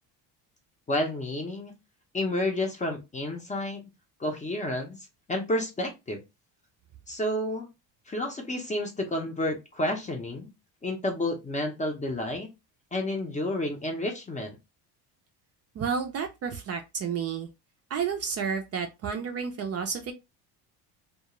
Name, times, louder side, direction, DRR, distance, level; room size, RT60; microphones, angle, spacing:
voice 1, 0.9-1.7 2.1-3.9 4.2-5.0 5.3-6.2 7.1-7.7 8.1-10.5 10.8-12.5 12.9-14.6, left 1 dB, 15° left, 0.5 m, -30 dB
voice 2, 15.7-17.5 17.9-20.1, right 6 dB, 35° right, 0.4 m, -31 dB
2.3 x 2.3 x 2.9 m
cardioid pair, 135°, 42 cm